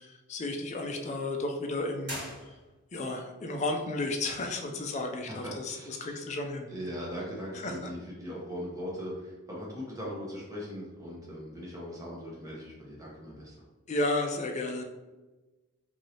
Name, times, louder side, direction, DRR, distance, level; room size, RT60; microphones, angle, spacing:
voice 1, 0.0-2.2 2.9-6.7 7.6-7.7 13.9-14.8, left 2 dB, 35° left, 3 dB, 0.3 m, -33 dB
sound 1, 2.0-3.1, equal, 55° right, 1.4 m, -41 dB
voice 2, 5.3-6.2 6.7-13.6, equal, 15° right, -5 dB, 0.8 m, -40 dB
3.0 x 2.6 x 2.7 m, 1.2 s
head